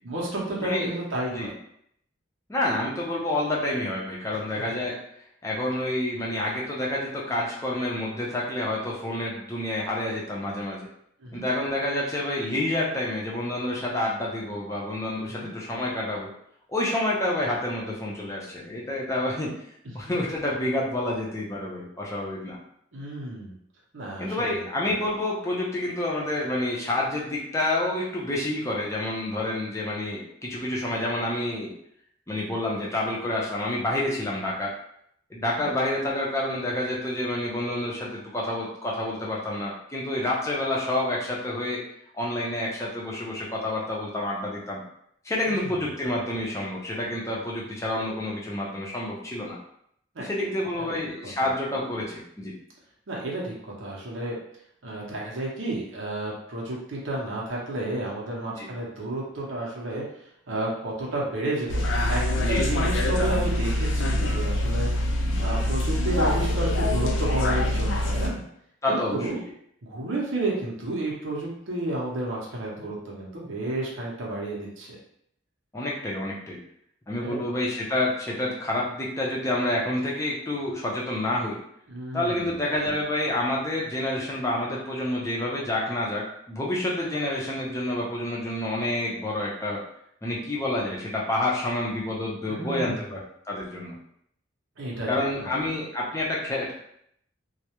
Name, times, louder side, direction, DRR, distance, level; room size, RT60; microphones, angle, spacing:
voice 1, 0.0-1.5 4.5-4.6 11.2-11.4 15.3-15.5 20.1-20.2 22.9-23.5 23.9-24.6 35.6-35.7 45.5-45.7 50.1-50.2 50.7-50.9 51.2-51.3 53.1-54.4 54.8-60.0 60.5-62.2 62.5-64.9 65.4-68.4 68.9-69.4 69.8-75.0 77.2-77.4 81.9-82.5 92.5-93.1 94.8-95.1 95.4-95.5, right 2 dB, 85° right, -3 dB, 0.7 m, -31 dB
voice 2, 0.6-0.9 1.3-1.5 2.5-5.0 5.4-10.9 11.3-16.3 16.7-19.5 19.9-22.6 24.2-31.7 32.3-34.7 35.3-41.8 42.1-44.8 45.2-49.6 50.2-52.5 58.6-58.7 62.4-62.6 68.8-69.4 75.7-76.6 77.1-81.6 82.1-89.8 90.2-93.2 93.5-93.9 95.1-96.7, left 1 dB, 15° left, -4 dB, 0.5 m, -28 dB
sound 1, 61.7-68.3, left 1 dB, 75° left, 0.4 m, -24 dB
2.2 x 2.0 x 2.8 m, 0.70 s
head